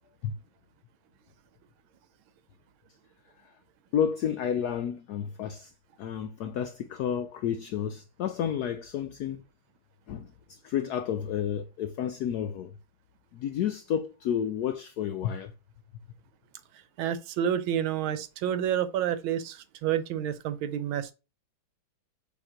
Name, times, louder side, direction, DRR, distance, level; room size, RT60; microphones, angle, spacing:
voice 1, 3.9-5.7 6.0-9.4 10.1-12.7 13.3-15.5, left 9 dB, 80° left, 0.8 m, -31 dB
voice 2, 17.0-21.1, right 9 dB, 80° right, 1.5 m, -29 dB
7.0 x 2.9 x 5.0 m
omnidirectional pair, 2.2 m